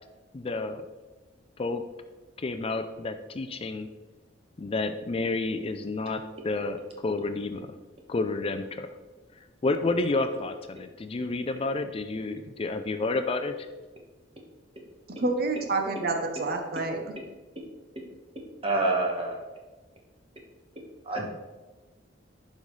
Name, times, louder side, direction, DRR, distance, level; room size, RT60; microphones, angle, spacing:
voice 1, 0.3-0.8 1.6-1.8 2.4-3.9 4.6-7.7 8.1-8.9 9.6-13.7, left 3 dB, 30° left, 8 dB, 0.4 m, -30 dB
voice 2, 15.1-17.1, right 3 dB, 55° right, 4 dB, 0.9 m, -28 dB
voice 3, 18.6-19.4 21.1-21.3, right 2 dB, 30° right, 0 dB, 1.4 m, -26 dB
11.0 x 5.3 x 3.2 m, 1.2 s
head